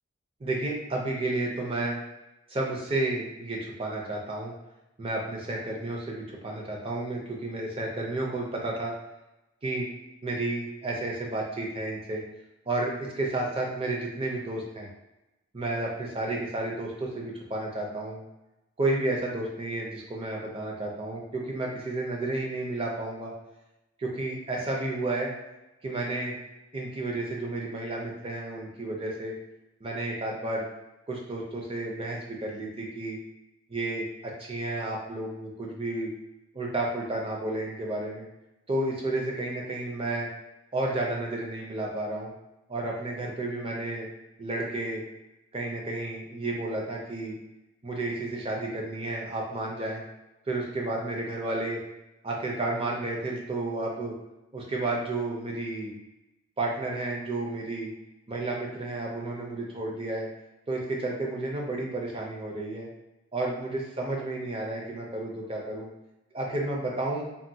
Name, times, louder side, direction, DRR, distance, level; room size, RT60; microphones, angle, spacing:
voice 1, 0.4-2.0 2.5-4.5 5.0-8.9 9.6-9.9 10.2-12.2 12.7-14.9 15.5-18.2 18.8-23.3 24.0-25.3 25.8-26.3 26.7-29.4 29.8-30.7 31.1-33.2 33.7-36.1 36.5-38.2 38.7-40.3 40.7-42.3 42.7-44.1 44.4-45.0 45.5-47.4 47.8-50.0 50.5-51.8 52.2-54.1 54.5-55.9 56.6-57.9 58.3-60.3 60.7-62.9 63.3-65.9 66.3-67.3, right 2 dB, 25° right, -2 dB, 0.5 m, -31 dB
3.5 x 2.2 x 2.7 m, 0.96 s
head